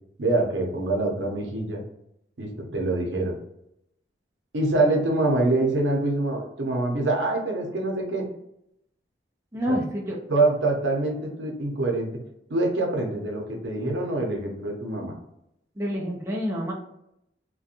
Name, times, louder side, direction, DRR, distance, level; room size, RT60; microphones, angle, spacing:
voice 1, 0.2-1.8 2.4-3.4 4.5-8.3 9.7-9.8 10.3-12.1 12.5-15.1, right 2 dB, 90° right, 1 dB, 0.7 m, -25 dB
voice 2, 9.5-10.2 15.8-16.7, equal, 15° right, -3 dB, 0.4 m, -28 dB
2.4 x 2.2 x 2.7 m, 0.79 s
head